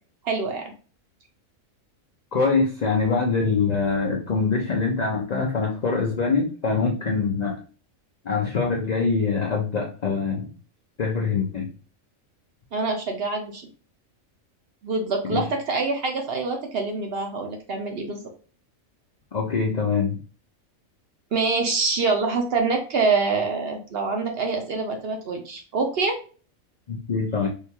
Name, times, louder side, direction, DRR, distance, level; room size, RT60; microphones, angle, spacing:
voice 1, 0.2-0.7 12.7-13.6 14.8-18.2 21.3-26.2, right 4 dB, 60° right, 3 dB, 0.7 m, -25 dB
voice 2, 2.3-7.6 8.2-10.5 11.0-11.7 15.3-15.4 19.3-20.2 26.9-27.5, left 4 dB, 70° left, 0 dB, 0.4 m, -24 dB
3.7 x 2.3 x 2.8 m, 0.38 s
omnidirectional pair, 1.4 m